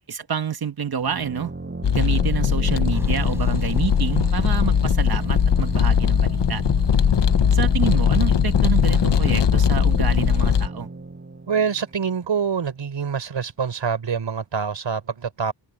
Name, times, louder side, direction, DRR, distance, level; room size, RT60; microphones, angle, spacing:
voice 1, 0.1-1.5 1.9-6.6 7.5-10.9, right 7 dB, 55° right, 1.5 m, -28 dB
sound 1, 0.9-12.4, right 3 dB, 25° right, 7.4 m, -33 dB
sound 2, 1.8-10.7, left 8 dB, 70° left, 1.1 m, -19 dB
Truck, 2.9-7.9, right 1 dB, 5° right, 4.4 m, -39 dB
voice 2, 11.5-15.5, right 6 dB, 80° right, 4.9 m, -25 dB
wide cardioid pair, 140°, 43 cm